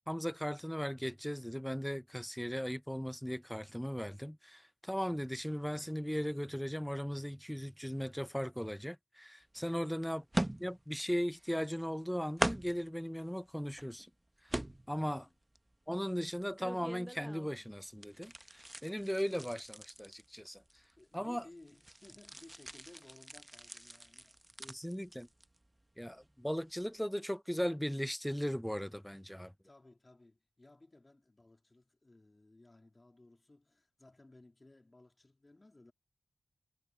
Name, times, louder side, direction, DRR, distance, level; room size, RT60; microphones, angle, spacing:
voice 1, 0.1-10.2 10.6-14.1 14.9-15.2 15.9-20.6 21.1-21.4 24.6-25.3 26.0-29.5, equal, 5° left, 0.4 m, -37 dB
sound 1, 9.5-9.6 10.3-11.0 11.3-12.0 12.4-12.9 13.5-14.0 14.5-15.2 15.5-17.6 17.9-21.1 21.5-25.7 26.0-26.2 26.7-26.8, right 1 dB, 20° right, 0.8 m, -41 dB
voice 2, 9.7-10.0 14.8-15.4 21.0-24.9 29.6-35.9, left 2 dB, 35° left, 2.7 m, -60 dB
cardioid pair, 40°, 0 cm